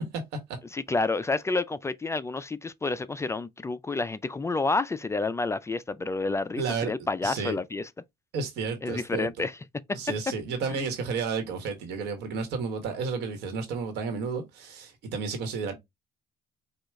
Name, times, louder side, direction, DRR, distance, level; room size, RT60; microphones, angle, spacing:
voice 1, 0.7-7.9 8.8-9.6, left 3 dB, 15° left, 0.3 m, -29 dB
voice 2, 6.6-6.9 7.2-7.6 8.3-9.5 9.9-15.7, right 5 dB, 85° right, 1.4 m, -32 dB
4.9 x 2.4 x 3.5 m
cardioid pair, 110°, 17 cm